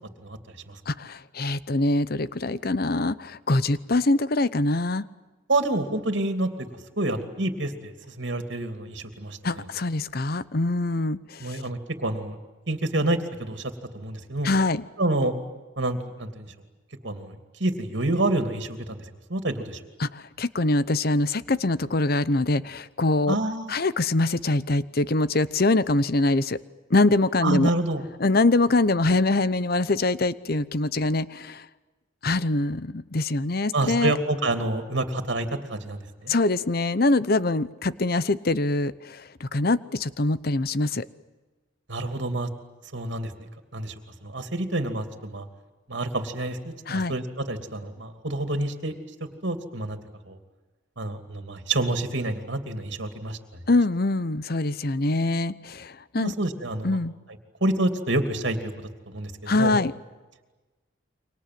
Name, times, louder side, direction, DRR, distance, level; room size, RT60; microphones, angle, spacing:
voice 1, 0.9-5.1 9.4-11.6 14.4-14.8 20.0-23.4 23.7-26.6 26.9-27.7 28.2-31.7 32.2-34.1 36.3-41.1 46.9-47.1 53.7-56.3 56.8-57.1 59.5-59.9, left 2 dB, 50° left, 16 dB, 0.9 m, -24 dB
voice 2, 5.5-6.5 7.0-9.6 11.4-12.4 12.7-14.5 15.0-15.3 15.8-16.5 17.0-19.0 19.3-19.8 23.3-23.7 27.4-28.0 33.7-36.3 41.9-42.5 42.9-43.3 43.7-43.9 44.2-45.4 45.9-48.9 49.2-50.0 50.3-50.4 51.0-53.6 56.1-57.0 57.6-58.7 59.1-59.7, right 2 dB, 65° right, 7 dB, 2.8 m, -28 dB
29.5 x 24.5 x 7.7 m, 1.2 s
head